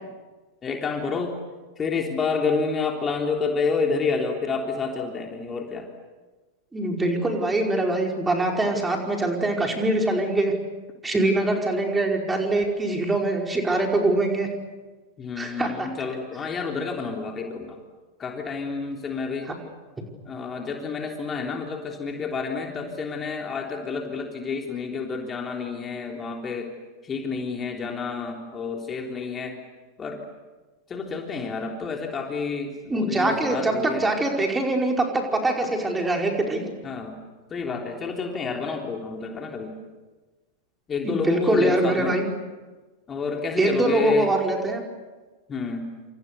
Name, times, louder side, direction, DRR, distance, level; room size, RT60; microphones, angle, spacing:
voice 1, 0.6-1.3 1.8-5.9 15.2-17.7 18.2-19.5 20.2-26.7 27.0-29.5 30.0-30.2 30.9-34.1 36.8-37.2 37.5-39.7 40.9-42.2 43.1-44.3 45.5-45.9, left 4 dB, 20° left, 2 dB, 3.5 m, -29 dB
voice 2, 6.7-10.5 11.0-14.5 15.4-15.9 19.4-19.5 32.9-36.7 41.0-42.2 43.6-44.8, right 2 dB, 10° right, 2 dB, 5.0 m, -23 dB
28.5 x 27.5 x 6.9 m, 1.3 s
figure-of-eight pair, 90°, 0 cm